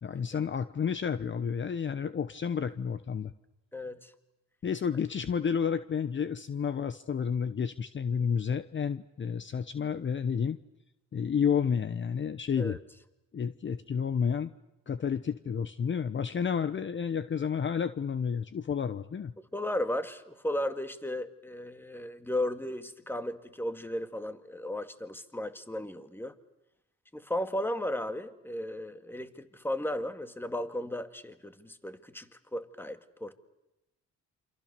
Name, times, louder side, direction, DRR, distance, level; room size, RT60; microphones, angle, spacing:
voice 1, 0.0-3.3 4.6-10.6 11.1-12.8 13.3-14.5 14.9-19.3, left 7 dB, 40° left, 13 dB, 1.0 m, -30 dB
voice 2, 3.7-4.1 12.6-12.8 19.5-26.3 27.1-33.3, left 1 dB, 5° left, 9 dB, 2.1 m, -35 dB
28.5 x 26.5 x 6.8 m, 0.94 s
cardioid pair, 90°, 30 cm